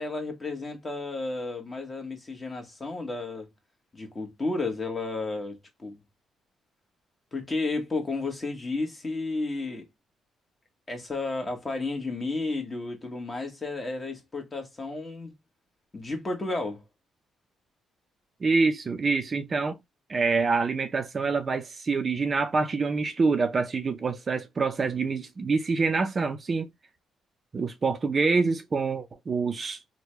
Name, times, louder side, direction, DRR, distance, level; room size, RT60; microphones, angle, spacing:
voice 1, 0.0-3.5 3.9-6.0 7.3-9.9 10.9-15.3 15.9-16.8, left 3 dB, 25° left, 1.2 m, -32 dB
voice 2, 18.4-19.8 20.1-26.7 27.5-29.8, right 4 dB, 35° right, 0.5 m, -26 dB
3.2 x 2.1 x 3.0 m
cardioid pair, 90°, 0 cm